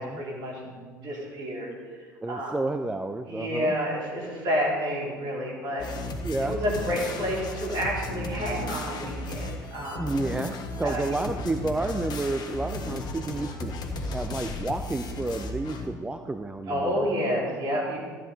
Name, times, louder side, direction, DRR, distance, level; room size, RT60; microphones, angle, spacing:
voice 1, 0.0-1.7 2.3-2.6 3.3-5.8 6.4-10.1 10.8-11.1 12.9-13.4 16.7-18.0, equal, 45° right, -4 dB, 4.0 m, -30 dB
voice 2, 2.2-3.7 6.2-6.6 9.8-13.8 14.1-17.0, right 2 dB, 10° right, 7 dB, 0.5 m, -31 dB
sound 1, 5.8-15.9, left 2 dB, 40° left, 1.4 m, -35 dB
13.5 x 8.8 x 4.1 m, 1.5 s
figure-of-eight pair, 65°, 11 cm